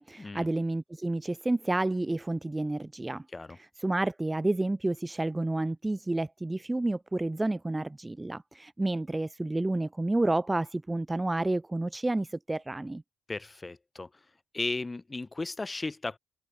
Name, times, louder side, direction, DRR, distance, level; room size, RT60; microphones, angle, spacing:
voice 1, 0.0-3.2 3.8-13.0, right 2 dB, 15° right, 1.0 m, -30 dB
voice 2, 13.3-14.1 14.5-16.2, left 3 dB, 25° left, 5.4 m, -35 dB
cardioid pair, 75°, 0 cm